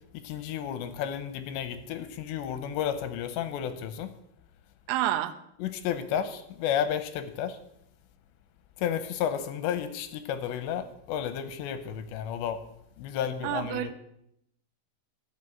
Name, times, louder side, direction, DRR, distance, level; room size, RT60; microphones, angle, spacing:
voice 1, 0.2-4.1 5.6-7.6 8.8-12.6 13.0-13.9, left 9 dB, 75° left, 11 dB, 2.7 m, -32 dB
voice 2, 4.9-5.3 13.4-13.9, right 13 dB, 90° right, 8 dB, 3.4 m, -28 dB
14.0 x 6.7 x 8.5 m, 0.77 s
omnidirectional pair, 5.7 m